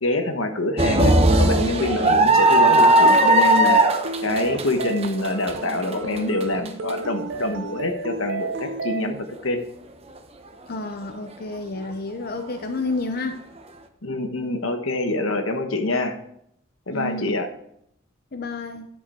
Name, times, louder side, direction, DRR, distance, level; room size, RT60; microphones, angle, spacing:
voice 1, 0.0-3.9 4.2-9.6 14.0-16.2 16.9-17.5, left 1 dB, 80° left, 6 dB, 1.3 m, -25 dB
sound 1, 0.8-6.9 7.4-7.5 8.7-8.9, right 1 dB, 30° right, 0.9 m, -17 dB
sound 2, 1.0-9.0, right 3 dB, 60° right, 0.6 m, -33 dB
voice 2, 10.7-13.4 16.9-17.4 18.3-18.9, left 2 dB, 50° left, 6 dB, 0.7 m, -30 dB
11.0 x 7.7 x 4.4 m, 0.73 s
head